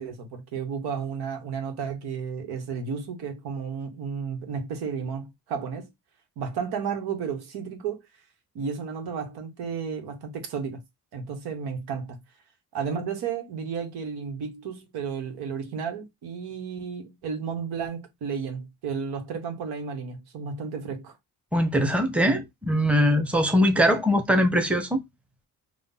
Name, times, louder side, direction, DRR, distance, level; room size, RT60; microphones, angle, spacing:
voice 1, 0.0-5.9 6.4-8.0 8.5-10.8 11.1-12.2 12.7-21.2, right 6 dB, 80° right, 1.4 m, -33 dB
voice 2, 21.5-25.0, equal, 5° right, 0.9 m, -22 dB
3.9 x 2.4 x 3.7 m
cardioid pair, 80°, 38 cm